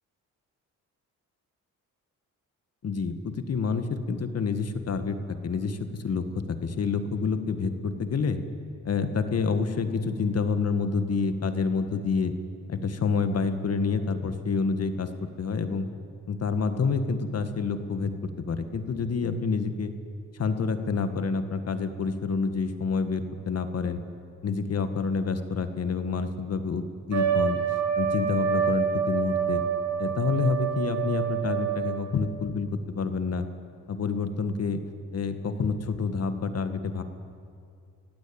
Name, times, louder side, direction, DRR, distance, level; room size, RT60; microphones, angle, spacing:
voice 1, 2.8-8.4 8.8-12.3 12.7-15.9 16.3-19.9 20.3-24.0 24.4-27.6 28.0-29.6 30.0-32.7 32.9-33.5 33.9-34.8 35.1-37.0, left 5 dB, 50° left, 9 dB, 1.9 m, -28 dB
Trumpet, 27.1-32.1, right 7 dB, 55° right, 5.2 m, -27 dB
24.5 x 16.5 x 8.9 m, 2.4 s
cardioid pair, 85°, 32 cm